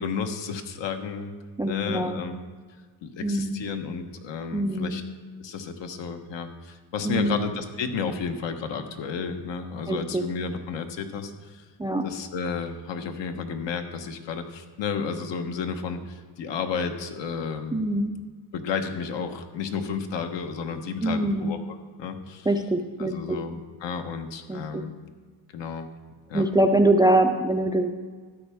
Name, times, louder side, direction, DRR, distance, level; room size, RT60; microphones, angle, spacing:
voice 1, 0.0-1.3 1.7-2.4 3.0-5.0 5.4-11.6 12.0-17.9 18.5-22.5 23.0-24.9 25.5-25.9 26.3-26.5, left 5 dB, 65° left, 6 dB, 1.2 m, -32 dB
voice 2, 1.6-2.2 3.2-3.6 4.5-5.0 7.0-7.4 9.9-10.3 11.8-12.0 17.7-18.1 21.0-21.5 22.5-23.4 24.5-24.8 26.3-27.9, right 1 dB, 10° right, 6 dB, 0.4 m, -24 dB
13.0 x 8.6 x 3.5 m, 1.5 s
cardioid pair, 110°, 46 cm